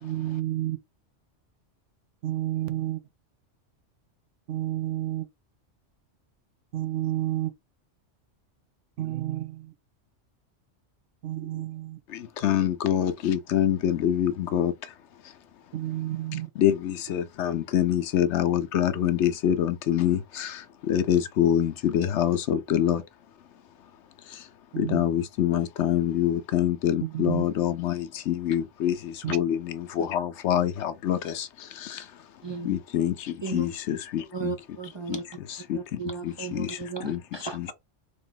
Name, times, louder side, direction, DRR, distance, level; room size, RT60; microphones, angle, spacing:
voice 1, 0.0-0.8 2.2-3.0 4.5-5.3 6.7-7.5 9.0-9.7 11.2-12.0 15.7-16.5 24.7-25.0 27.0-27.5 29.2-29.4, right 14 dB, 80° right, 1.0 m, -30 dB
voice 2, 12.1-14.9 15.2-15.3 16.6-23.0 24.3-24.5 24.8-32.2 32.6-34.6 35.1-37.2 37.5-37.7, left 10 dB, 75° left, 0.9 m, -26 dB
voice 3, 32.4-32.8 33.4-33.6 34.3-35.2 35.7-37.7, right 5 dB, 35° right, 0.4 m, -35 dB
3.5 x 3.4 x 3.8 m
omnidirectional pair, 1.2 m